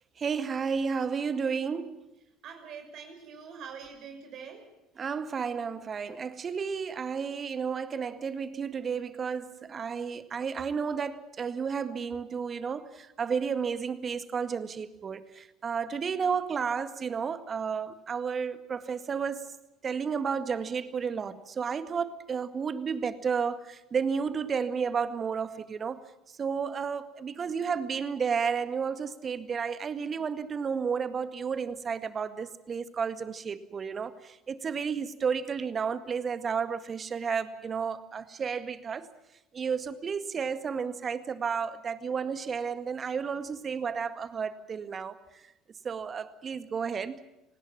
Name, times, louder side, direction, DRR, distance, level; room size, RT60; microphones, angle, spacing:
voice 1, 0.2-2.0 5.0-19.5 19.8-39.1 39.5-45.2 45.8-47.2, right 6 dB, 35° right, 1.9 m, -32 dB
voice 2, 2.4-4.7, right 6 dB, 55° right, 6.2 m, -44 dB
26.5 x 19.0 x 7.4 m
hypercardioid pair, 65°, 0 cm